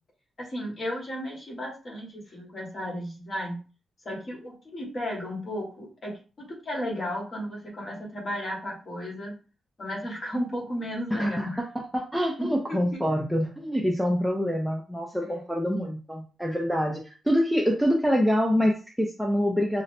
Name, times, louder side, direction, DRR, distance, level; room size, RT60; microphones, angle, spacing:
voice 1, 0.4-3.6 4.0-9.3 9.8-11.6 12.4-13.0 15.2-15.4, equal, 35° left, -2 dB, 1.6 m, -34 dB
voice 2, 11.7-19.8, equal, ahead, -1 dB, 0.5 m, -26 dB
5.4 x 2.1 x 2.7 m, 0.34 s
wide cardioid pair, 145°, 0 cm